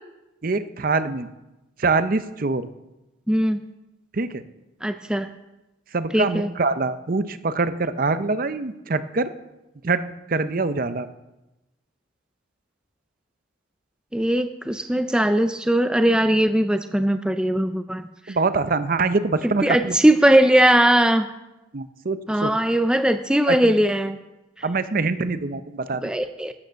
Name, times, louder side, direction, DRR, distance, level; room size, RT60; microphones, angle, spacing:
voice 1, 0.4-1.3 1.8-2.7 4.1-4.4 5.9-9.3 9.8-10.0 10.3-11.1 18.3-20.0 21.7-22.5 23.5-23.7 24.6-26.0, right 3 dB, 45° right, 12 dB, 0.6 m, -24 dB
voice 2, 3.3-3.6 4.8-5.3 6.1-6.5 14.1-18.4 19.4-21.3 22.3-24.2 26.0-26.5, right 1 dB, 5° right, 8 dB, 0.4 m, -20 dB
13.0 x 9.3 x 6.4 m, 0.99 s
head